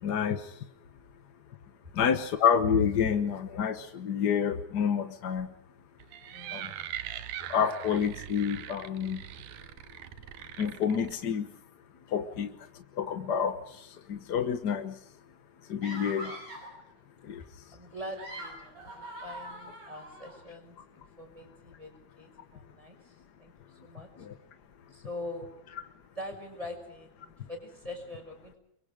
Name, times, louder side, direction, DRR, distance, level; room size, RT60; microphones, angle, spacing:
voice 1, 0.0-0.7 1.9-5.5 6.5-6.7 7.5-9.3 10.6-11.5 12.1-15.0 15.7-16.3 17.2-17.4 24.2-24.3, left 7 dB, 60° left, 8 dB, 1.1 m, -29 dB
sound 1, 6.0-11.2, right 11 dB, 85° right, 2.6 m, -42 dB
voice 2, 6.3-7.0 16.2-16.4 17.4-21.9 22.2-24.1 24.9-25.5 26.2-28.6, left 1 dB, 10° right, 3 dB, 5.8 m, -44 dB
sound 2, 15.8-16.8 18.0-20.4, right 1 dB, 60° right, 8.5 m, -43 dB
29.5 x 23.0 x 5.0 m, 0.75 s
omnidirectional pair, 3.4 m